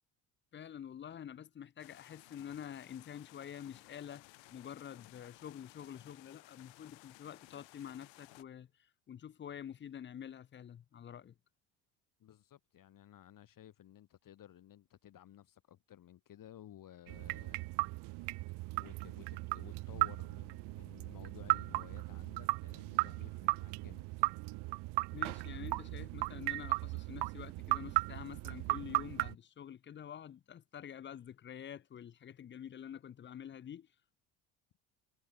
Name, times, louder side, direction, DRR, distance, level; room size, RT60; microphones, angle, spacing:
voice 1, 0.5-4.2 4.5-8.7 9.1-11.3 25.1-33.9, left 9 dB, 25° left, 0.5 m, -48 dB
sound 1, 1.8-8.4, left 22 dB, 75° left, 6.7 m, -59 dB
voice 2, 12.2-17.7 18.7-24.3, left 11 dB, 45° left, 1.5 m, -56 dB
sound 2, 17.1-29.3, right 23 dB, 60° right, 0.6 m, -36 dB
supercardioid pair, 85°, 45 cm